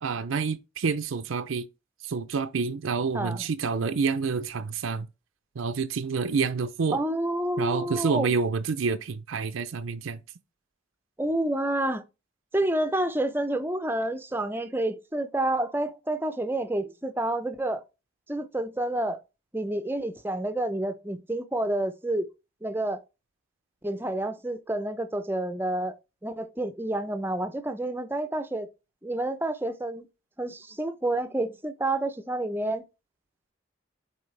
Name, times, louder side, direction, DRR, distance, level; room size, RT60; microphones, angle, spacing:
voice 1, 0.0-1.7 2.0-5.1 5.6-7.0 7.6-10.2, right 5 dB, 90° right, 0.5 m, -28 dB
voice 2, 3.1-3.4 6.9-8.3 11.2-12.0 12.5-17.8 18.3-19.2 19.5-22.3 22.6-23.0 23.8-26.0 26.2-28.7 29.0-30.1 30.4-32.8, right 1 dB, 10° right, 0.5 m, -29 dB
7.0 x 4.3 x 3.2 m
head